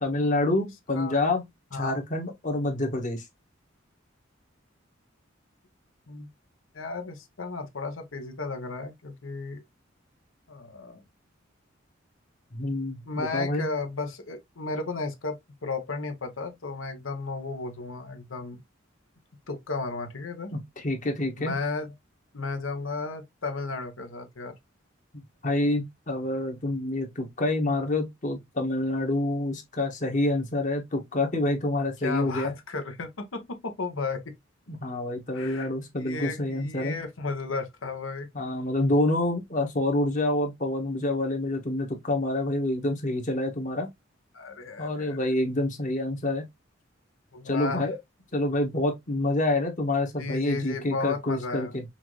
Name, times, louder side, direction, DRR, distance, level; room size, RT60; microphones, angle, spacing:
voice 1, 0.0-1.4 1.7-3.2 12.5-13.7 20.5-21.5 25.4-32.5 34.7-37.0 38.3-43.9 44.8-46.4 47.4-48.0 48.3-51.8, left 1 dB, 40° left, 1.2 m, -27 dB
voice 2, 6.7-9.6 10.5-11.0 13.1-18.6 19.5-20.5 21.4-21.9 22.3-24.5 32.0-34.2 35.3-35.7 35.9-38.3 44.3-45.2 47.3-47.9 50.2-51.8, left 3 dB, 85° left, 0.9 m, -34 dB
5.6 x 2.5 x 3.0 m
head